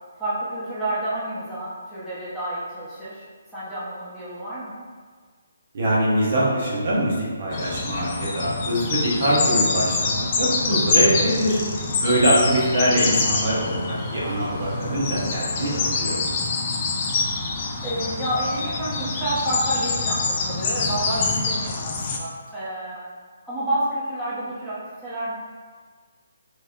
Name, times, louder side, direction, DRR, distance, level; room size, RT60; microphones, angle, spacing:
voice 1, 0.2-3.2 3.5-4.7 8.5-8.8 11.7-12.0 15.4-15.8 17.8-23.1 23.4-25.3, right 1 dB, 5° right, -14 dB, 0.8 m, -29 dB
voice 2, 5.7-11.6 12.0-16.2, right 1 dB, 55° right, -6 dB, 0.9 m, -23 dB
sound 1, 7.5-22.2, left 4 dB, 35° left, 0.4 m, -25 dB
3.1 x 2.8 x 2.4 m, 1.5 s
figure-of-eight pair, 145°, 0 cm